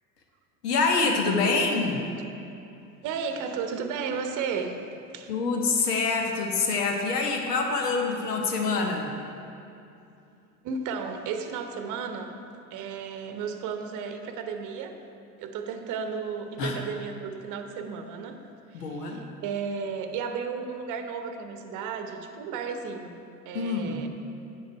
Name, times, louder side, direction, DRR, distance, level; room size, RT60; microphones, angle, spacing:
voice 1, 0.6-2.0 5.3-9.1 16.6-16.8 18.7-19.2 23.5-24.0, left 4 dB, 75° left, 2 dB, 1.3 m, -26 dB
voice 2, 3.0-5.3 10.6-12.4 12.7-15.0 15.4-18.4 18.7-23.2 23.4-24.1, right 5 dB, 40° right, 6 dB, 0.9 m, -34 dB
8.9 x 6.5 x 4.6 m, 2.7 s
figure-of-eight pair, 75°, 48 cm